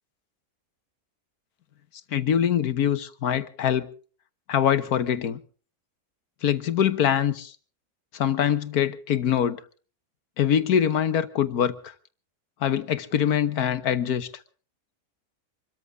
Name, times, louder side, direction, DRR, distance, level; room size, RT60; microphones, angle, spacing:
voice 1, 2.1-3.9 4.5-5.4 6.4-7.5 8.1-9.6 10.4-11.9 12.6-14.3, left 9 dB, 80° left, 1.6 m, -24 dB
26.0 x 13.5 x 3.6 m
omnidirectional pair, 1.6 m